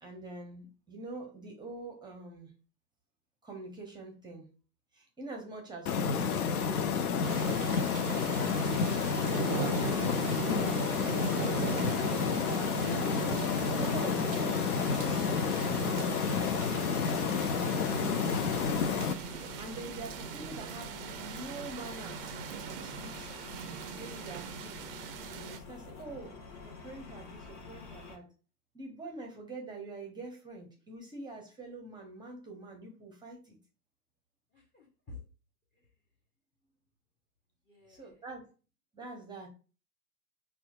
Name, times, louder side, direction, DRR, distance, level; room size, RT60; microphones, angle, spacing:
voice 1, 0.0-2.5 3.4-4.5 4.9-7.6 8.1-8.6 9.2-12.7 13.7-16.3 19.6-22.4 22.6-23.3 23.9-24.8 25.2-28.3 28.7-33.6 37.9-38.4 38.9-39.5, right 2 dB, 10° right, 0.7 m, -45 dB
sound 1, 5.9-19.1, left 6 dB, 65° left, 0.7 m, -30 dB
sound 2, 7.2-25.6, right 9 dB, 40° right, 0.4 m, -40 dB
sound 3, 18.4-28.2, left 4 dB, 40° left, 1.2 m, -47 dB
voice 2, 34.5-35.2 37.7-38.2, left 3 dB, 20° left, 1.0 m, -52 dB
5.5 x 2.3 x 2.4 m
figure-of-eight pair, 100°, 49 cm